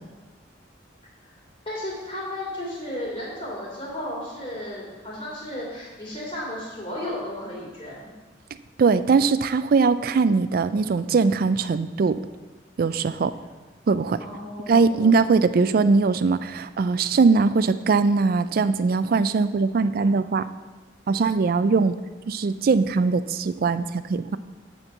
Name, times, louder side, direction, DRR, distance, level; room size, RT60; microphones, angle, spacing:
voice 1, 1.6-8.1 14.2-15.0, left 1 dB, 30° left, -5 dB, 3.1 m, -34 dB
voice 2, 8.8-12.2 12.8-13.3 13.9-14.2 14.7-20.5 21.1-21.9 22.3-24.4, right 4 dB, 55° right, 13 dB, 0.4 m, -21 dB
7.9 x 4.5 x 7.0 m, 1.3 s
head